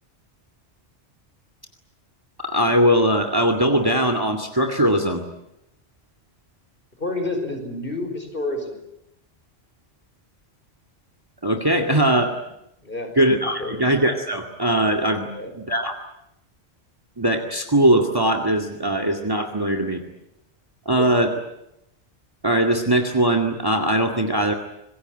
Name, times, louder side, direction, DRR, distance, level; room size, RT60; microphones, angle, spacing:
voice 1, 2.4-5.2 11.4-12.3 13.2-15.3 15.6-16.0 17.2-20.0 20.9-21.3 22.4-24.5, right 1 dB, 20° right, 5 dB, 2.2 m, -20 dB
voice 2, 7.0-8.8 11.6-11.9 12.8-13.2 13.6-13.8 15.3-15.5 21.0-21.1, left 2 dB, 50° left, 6 dB, 5.4 m, -29 dB
26.5 x 21.5 x 9.1 m, 0.83 s
omnidirectional pair, 1.2 m